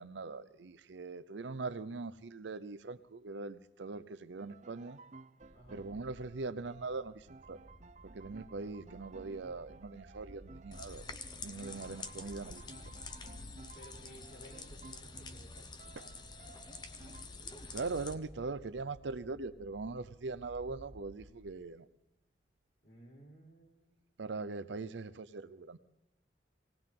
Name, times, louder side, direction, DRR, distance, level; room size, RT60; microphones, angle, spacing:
voice 1, 0.0-5.0 5.7-7.6 8.0-11.1 11.4-12.7 16.0-16.1 17.7-21.9 24.2-25.8, right 3 dB, 80° right, 13 dB, 0.6 m, -41 dB
sound 1, 4.4-17.3, right 3 dB, 40° right, 0.5 m, -57 dB
sound 2, 5.4-21.6, equal, 60° right, 1.5 m, -58 dB
voice 2, 5.5-5.9 13.8-16.1 22.8-24.1, equal, 60° left, -4 dB, 4.4 m, -57 dB
sound 3, 10.7-18.1, left 4 dB, 25° left, 0.7 m, -47 dB
19.0 x 18.5 x 3.8 m, 0.91 s
head